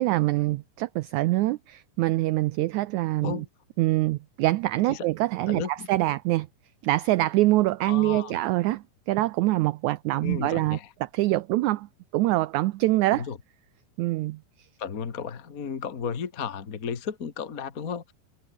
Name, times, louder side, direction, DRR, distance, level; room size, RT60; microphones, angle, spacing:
voice 1, 0.0-3.4 3.8-6.5 6.8-11.9 12.1-13.3 14.0-14.4, right 18 dB, 90° right, 1.6 m, -25 dB
voice 2, 5.5-5.9 7.8-8.4 10.2-10.9 13.1-13.4 14.8-18.1, left 6 dB, 40° left, 1.4 m, -34 dB
omnidirectional pair, 4.1 m